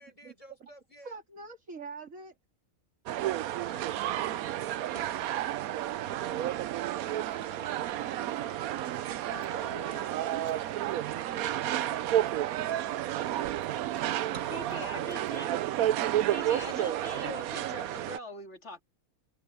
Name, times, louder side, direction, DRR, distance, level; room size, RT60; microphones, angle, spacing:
voice 1, 0.0-1.2 3.6-7.9 8.5-9.0 10.5-13.8 14.5-15.6, equal, 25° left, 4.4 m, -57 dB
voice 2, 1.0-2.4 9.3-11.1, right 3 dB, 65° right, 3.1 m, -46 dB
sound 1, 3.1-18.2, right 12 dB, 90° right, 1.1 m, -31 dB
sound 2, 7.0-11.6 12.2-12.3 14.3-15.0, right 3 dB, 35° right, 1.9 m, -52 dB
Computer keyboard, 7.3-9.1 9.4-12.4 12.8-15.4 15.8-16.5, left 2 dB, 80° left, 6.5 m, -64 dB
voice 3, 14.5-15.5 16.3-18.8, left 3 dB, 55° left, 2.5 m, -42 dB
omnidirectional pair, 1.5 m